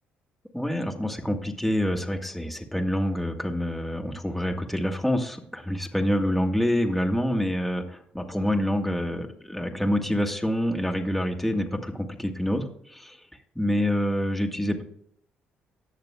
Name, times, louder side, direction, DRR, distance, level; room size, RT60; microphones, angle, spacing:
voice 1, 0.5-13.2 13.6-14.8, equal, ahead, 3 dB, 1.8 m, -27 dB
19.0 x 6.7 x 2.3 m, 0.67 s
hypercardioid pair, 55°, 4 cm